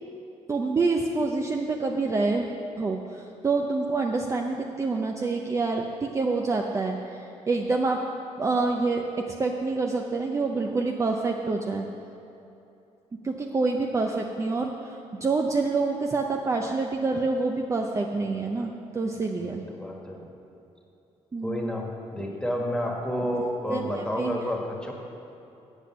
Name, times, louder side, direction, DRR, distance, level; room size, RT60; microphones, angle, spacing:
voice 1, 0.5-2.5 2.8-8.1 8.4-11.9 13.1-19.6 21.3-21.8 23.7-24.3, right 3 dB, 25° right, 1 dB, 0.6 m, -27 dB
voice 2, 19.4-20.2 21.4-24.9, equal, 5° left, 0 dB, 1.6 m, -30 dB
8.4 x 8.2 x 7.3 m, 2.9 s
cardioid pair, 130°, 12 cm